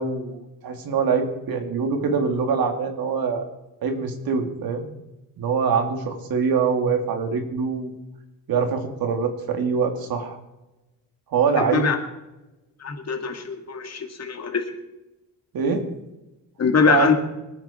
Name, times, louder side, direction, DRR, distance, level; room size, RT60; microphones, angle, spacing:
voice 1, 0.0-3.5 3.8-4.9 5.4-8.0 8.5-10.4 11.3-11.9 15.5-15.9 16.8-17.1, right 5 dB, 75° right, 4 dB, 3.0 m, -24 dB
voice 2, 11.6-12.0 12.8-14.6 16.6-17.1, left 5 dB, 45° left, 4 dB, 2.5 m, -22 dB
25.0 x 9.5 x 4.5 m, 0.99 s
cardioid pair, 125°, 35 cm